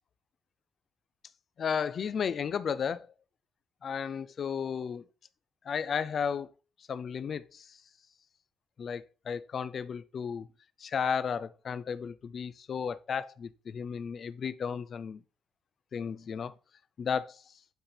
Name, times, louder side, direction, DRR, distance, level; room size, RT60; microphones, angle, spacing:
voice 1, 1.6-3.1 3.8-5.0 5.7-6.5 6.9-7.8 8.8-10.5 10.8-15.2 15.9-16.5 17.0-17.4, left 7 dB, 45° left, 0.4 m, -34 dB
7.9 x 4.3 x 3.3 m
cardioid pair, 140°, 0 cm